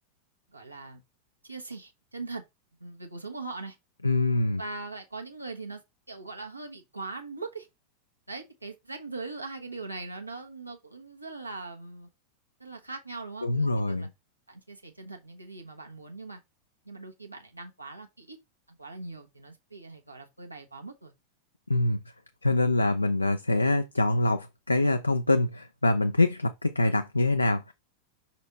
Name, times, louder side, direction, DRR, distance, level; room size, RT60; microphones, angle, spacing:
voice 1, 0.5-1.0 1.4-2.4 2.8-3.8 4.6-5.8 6.1-7.7 8.3-12.1 12.6-14.1 14.5-16.4 16.8-18.4 18.7-21.1, right 3 dB, 85° right, 1.2 m, -41 dB
voice 2, 4.0-4.6 13.4-14.1 21.7-22.0 22.4-27.7, left 2 dB, 85° left, 0.4 m, -25 dB
5.4 x 4.2 x 4.3 m
figure-of-eight pair, 90°, 0 cm